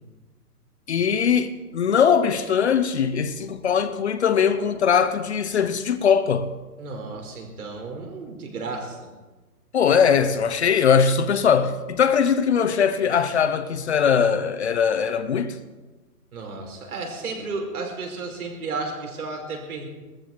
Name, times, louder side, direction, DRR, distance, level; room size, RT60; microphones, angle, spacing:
voice 1, 0.9-6.5 9.7-15.6, left 7 dB, 45° left, 0.9 m, -21 dB
voice 2, 6.8-9.0 16.3-19.9, right 3 dB, 65° right, 5.3 m, -33 dB
19.5 x 14.0 x 4.6 m
hypercardioid pair, 165°, 47 cm